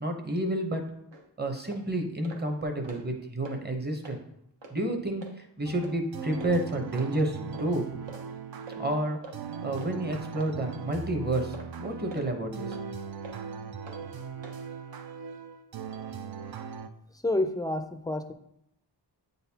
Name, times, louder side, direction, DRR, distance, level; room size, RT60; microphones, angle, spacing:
voice 1, 0.0-0.9 1.4-4.2 4.7-5.2 5.6-7.9 8.8-9.2 9.6-12.8, right 1 dB, 25° right, 4 dB, 0.8 m, -30 dB
sound 1, 1.1-1.2 1.7-1.8 2.2-2.4 2.7-3.1 3.4-3.6 4.0-4.2 4.6-4.7 5.2-5.3 5.8-6.0 6.4-6.5 7.0-7.1 7.5-7.7 8.1-8.2 8.7-8.8 9.2-9.4 9.8-9.9 10.4-10.5 10.9-11.1 11.5-11.7 12.1-12.3 12.7-12.8 13.2-13.4 13.9-14.0 14.4-14.6, right 2 dB, 75° right, 1.1 m, -45 dB
sound 2, 5.6-16.9, right 6 dB, 55° right, 0.5 m, -39 dB
voice 2, 17.2-18.3, left 1 dB, 10° left, 7 dB, 0.3 m, -28 dB
8.6 x 4.0 x 2.8 m, 0.78 s
wide cardioid pair, 105°, 44 cm